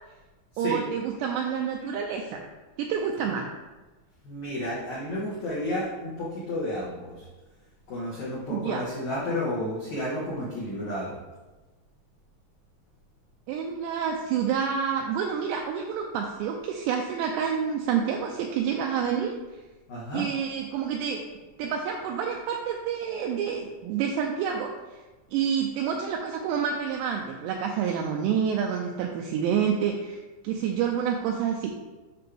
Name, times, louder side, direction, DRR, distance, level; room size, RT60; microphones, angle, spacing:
voice 1, 0.6-2.4 2.8-3.5 8.5-8.9 13.5-19.3 20.1-21.2 21.6-25.0 25.3-30.2 30.4-31.8, right 7 dB, 85° right, 1 dB, 2.5 m, -28 dB
voice 2, 4.2-7.2 7.9-11.2 19.9-20.3, left 1 dB, 85° left, -6 dB, 1.6 m, -31 dB
8.9 x 5.7 x 3.4 m, 1.2 s
omnidirectional pair, 5.6 m